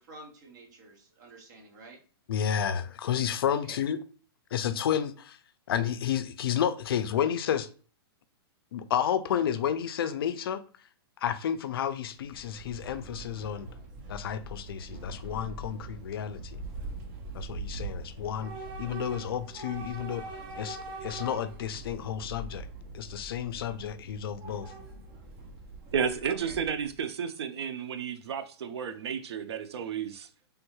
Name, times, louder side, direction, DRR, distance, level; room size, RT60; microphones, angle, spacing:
voice 1, 0.0-2.0 3.6-3.8 26.3-26.5, right 2 dB, 45° right, 0.9 m, -49 dB
voice 2, 2.3-4.0 4.5-5.4 5.7-7.7 8.7-10.6 11.2-13.7 14.1-16.6 17.3-20.2 20.6-22.7 22.9-24.7, left 9 dB, 65° left, 0.4 m, -31 dB
Train / Subway metro underground, 12.1-27.0, right 2 dB, 25° right, 0.4 m, -42 dB
voice 3, 25.9-30.3, right 7 dB, 90° right, 0.4 m, -32 dB
3.4 x 2.3 x 3.0 m
hypercardioid pair, 170°, 13 cm